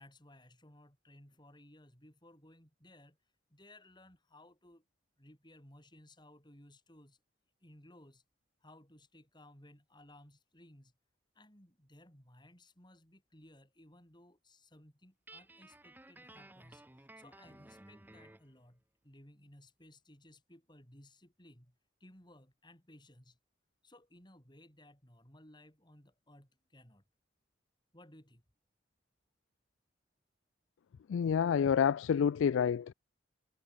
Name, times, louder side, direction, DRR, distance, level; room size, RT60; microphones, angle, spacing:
voice 1, 0.0-3.2 3.5-4.8 5.2-7.2 7.6-8.2 8.6-10.9 11.3-23.4 23.8-27.0 27.9-28.4, left 1 dB, 25° left, 6.7 m, -59 dB
Guitar, 15.3-18.5, right 1 dB, 10° right, 1.0 m, -56 dB
voice 2, 31.1-32.9, left 7 dB, 85° left, 0.3 m, -28 dB
head